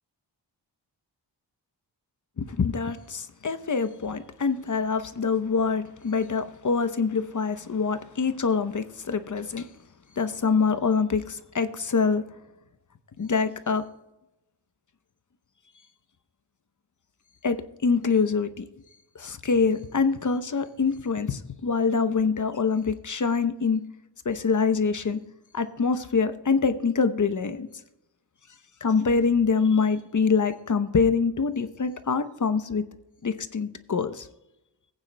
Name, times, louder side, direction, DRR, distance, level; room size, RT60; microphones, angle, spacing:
voice 1, 2.4-9.7 10.2-12.2 13.2-13.8 17.4-17.6 17.8-18.6 19.1-23.8 24.2-25.2 25.5-27.7 28.8-32.8 33.2-34.3, left 5 dB, 45° left, 10 dB, 0.8 m, -25 dB
16.5 x 8.9 x 2.2 m, 0.89 s
cardioid pair, 65°, 43 cm